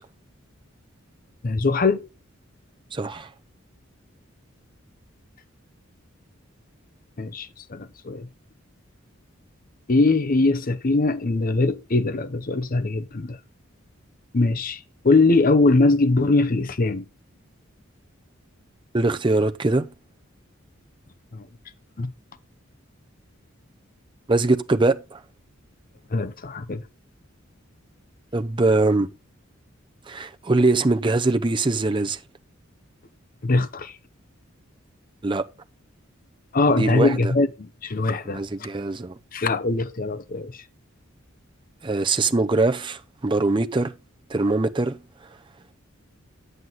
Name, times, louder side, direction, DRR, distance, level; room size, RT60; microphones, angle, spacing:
voice 1, 1.4-2.1 7.2-8.3 9.9-13.4 14.3-14.8 15.0-17.0 21.3-21.5 22.0-22.1 26.1-26.8 33.4-33.9 36.5-38.4 39.3-40.5, left 3 dB, 45° left, 0.7 m, -21 dB
voice 2, 2.9-3.3 18.9-19.9 24.3-25.2 28.3-29.1 30.1-32.2 35.2-35.4 36.8-37.3 38.3-39.1 41.8-43.9 44.3-45.0, right 2 dB, 25° right, 0.6 m, -22 dB
9.2 x 7.9 x 4.0 m
head